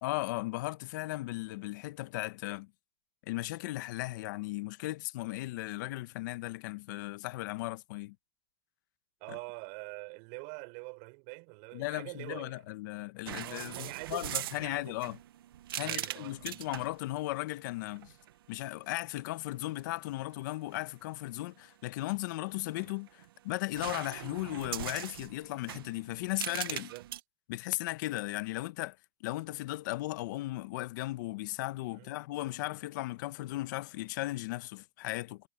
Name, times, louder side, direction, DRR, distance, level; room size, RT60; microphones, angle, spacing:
voice 1, 0.0-2.7 3.3-8.1 9.3-9.4 11.7-15.2 15.8-18.1 18.5-26.9 27.5-29.0 29.2-35.5, left 18 dB, 55° left, 1.0 m, -36 dB
voice 2, 9.2-12.6 13.3-15.0 15.8-16.6 26.7-27.0 31.9-32.1 32.6-32.7, right 36 dB, 45° right, 6.1 m, -45 dB
sound 1, 13.3-17.0 17.9-18.3 22.5-23.3 23.7-27.2, right 12 dB, 75° right, 1.3 m, -40 dB
hypercardioid pair, 140°, 12 cm